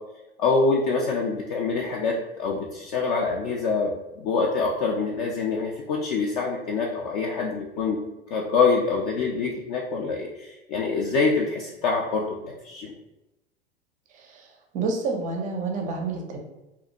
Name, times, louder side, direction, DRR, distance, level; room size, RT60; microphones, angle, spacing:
voice 1, 0.4-8.0 8.3-12.9, left 4 dB, 40° left, -2 dB, 0.4 m, -25 dB
voice 2, 14.1-14.5 14.7-16.4, right 4 dB, 25° right, 2 dB, 0.5 m, -29 dB
2.4 x 2.1 x 2.7 m, 0.95 s
figure-of-eight pair, 85°, 31 cm